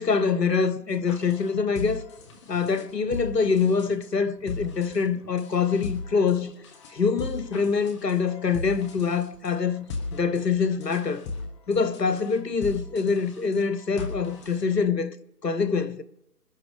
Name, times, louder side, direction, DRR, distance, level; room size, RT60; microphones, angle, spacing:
voice 1, 0.0-2.0 2.5-6.5 6.9-9.9 10.1-11.2 11.7-15.1 15.4-16.0, left 5 dB, 90° left, 1.1 m, -25 dB
sound 1, 0.9-14.7, left 3 dB, 20° left, 1.2 m, -39 dB
25.0 x 11.0 x 3.3 m
figure-of-eight pair, 145°, 48 cm